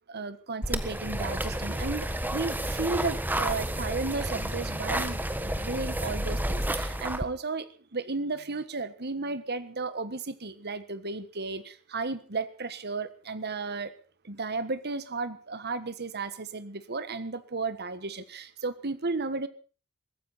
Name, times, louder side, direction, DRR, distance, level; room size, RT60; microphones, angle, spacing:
voice 1, 0.1-13.9 14.2-19.5, right 3 dB, 50° right, 13 dB, 1.4 m, -34 dB
sound 1, 0.6-7.2, right 1 dB, 10° right, 1.3 m, -31 dB
22.5 x 15.0 x 4.2 m, 0.37 s
head